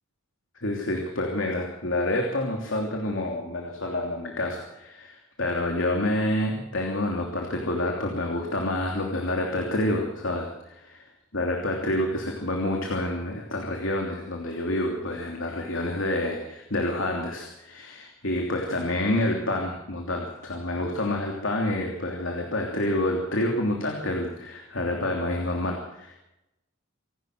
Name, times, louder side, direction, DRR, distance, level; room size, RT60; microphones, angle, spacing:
voice 1, 0.6-10.9 11.3-26.1, left 1 dB, 65° left, 1 dB, 3.2 m, -28 dB
27.0 x 12.0 x 7.9 m, 0.90 s
head